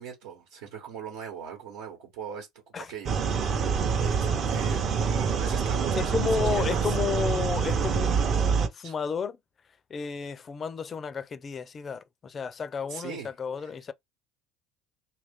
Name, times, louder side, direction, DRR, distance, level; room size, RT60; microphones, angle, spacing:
voice 1, 0.0-3.6 4.0-7.0 8.8-8.9 12.9-13.3 13.6-13.7, right 7 dB, 80° right, 1.1 m, -41 dB
sound 1, 3.1-8.7, right 6 dB, 45° right, 0.7 m, -26 dB
voice 2, 5.9-9.4 9.9-13.9, left 6 dB, 35° left, 0.4 m, -32 dB
2.8 x 2.4 x 3.5 m
supercardioid pair, 90°, 0 cm